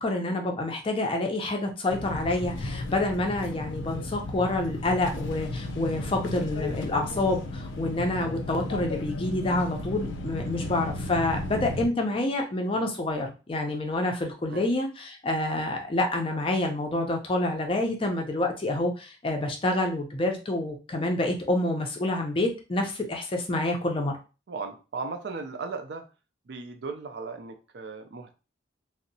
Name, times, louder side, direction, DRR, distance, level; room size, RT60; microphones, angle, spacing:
voice 1, 0.0-24.2, left 2 dB, 30° left, 3 dB, 0.4 m, -28 dB
sound 1, 1.9-11.9, left 2 dB, 90° left, 0.5 m, -34 dB
voice 2, 24.5-26.1 26.5-28.3, right 4 dB, 60° right, 6 dB, 0.4 m, -36 dB
2.6 x 2.0 x 2.6 m, 0.32 s
head